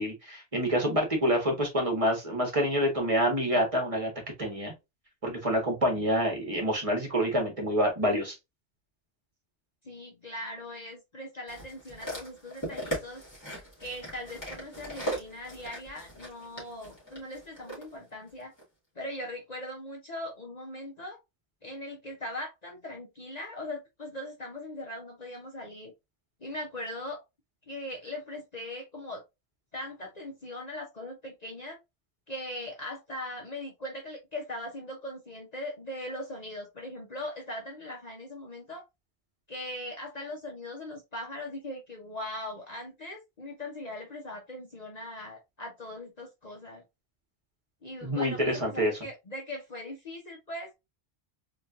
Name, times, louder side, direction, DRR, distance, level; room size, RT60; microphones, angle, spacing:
voice 1, 0.0-4.1 4.4-4.7 5.2-8.3 48.0-48.9, equal, 30° right, 1.4 m, -27 dB
voice 2, 9.8-13.2 13.8-18.5 19.0-21.2 21.6-25.9 26.4-27.2 27.7-29.2 29.7-31.8 32.3-38.8 39.5-46.8 47.8-48.4 48.7-50.7, left 1 dB, 40° left, 0.9 m, -40 dB
sound 1, 11.5-17.8 18.6-18.7, right 1 dB, 15° left, 2.4 m, -39 dB
4.2 x 3.0 x 2.5 m
omnidirectional pair, 1.1 m